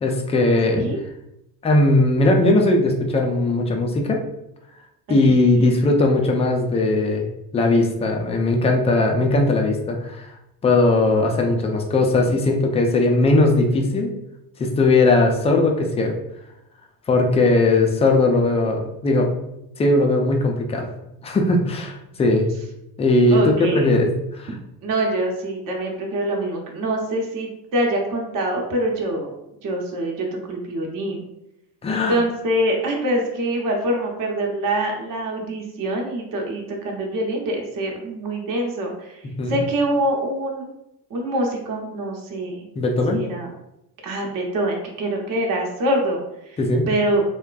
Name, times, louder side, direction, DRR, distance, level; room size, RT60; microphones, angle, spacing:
voice 1, 0.0-0.8 1.6-4.2 5.1-7.3 7.5-10.3 10.6-14.1 14.6-16.2 17.1-19.3 19.8-20.9 21.2-22.5 23.0-24.5 31.8-32.2 39.2-39.6 42.8-43.3 46.6-46.9, left 2 dB, 15° left, 2 dB, 0.3 m, -19 dB
voice 2, 5.3-5.7 23.3-23.9 24.8-29.3 29.6-31.2 32.1-39.2 39.5-40.7 41.1-42.7 43.1-43.5 44.0-46.6 46.9-47.2, right 1 dB, 40° right, 0 dB, 0.8 m, -24 dB
3.5 x 2.2 x 2.4 m, 0.85 s
hypercardioid pair, 60°, 50 cm